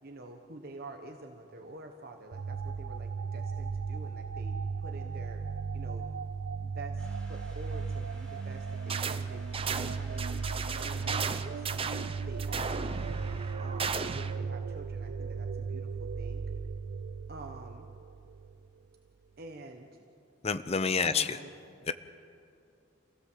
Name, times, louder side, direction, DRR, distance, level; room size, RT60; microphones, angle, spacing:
voice 1, 0.0-5.4 5.7-6.1 6.6-10.3 10.7-12.0 12.3-12.9 13.6-16.4 17.3-17.9 19.4-19.9 21.0-21.4, right 2 dB, 50° right, 3 dB, 1.2 m, -47 dB
sound 1, 2.3-18.7, right 5 dB, 70° right, 0.5 m, -36 dB
sound 2, 7.0-13.5, equal, 5° left, 4.0 m, -56 dB
sound 3, 8.9-9.2 9.5-14.3, right 5 dB, 30° right, 0.7 m, -35 dB
voice 2, 20.4-21.4 21.9-22.0, left 5 dB, 30° left, 12 dB, 0.7 m, -28 dB
27.0 x 17.0 x 7.5 m, 2.6 s
head